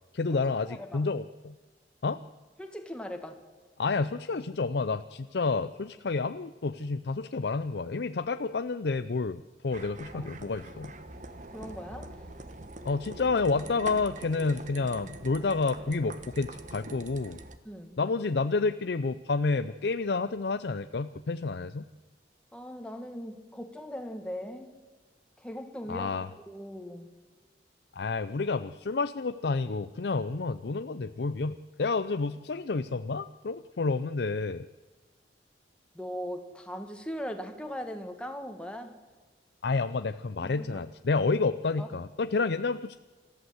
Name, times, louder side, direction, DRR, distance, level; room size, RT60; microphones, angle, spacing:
voice 1, 0.1-1.5 2.0-2.2 3.8-10.9 12.8-17.4 18.0-21.9 25.9-26.3 28.0-34.7 39.6-43.0, left 4 dB, 65° left, 0.5 m, -29 dB
voice 2, 0.7-1.0 2.6-3.4 10.1-10.3 11.5-12.2 17.6-18.0 22.5-24.7 25.4-27.1 35.9-39.0 40.4-40.8 41.8-41.9, equal, 5° left, 1.9 m, -39 dB
sound 1, 9.7-17.6, right 2 dB, 45° right, 1.3 m, -44 dB
27.0 x 14.5 x 8.0 m
head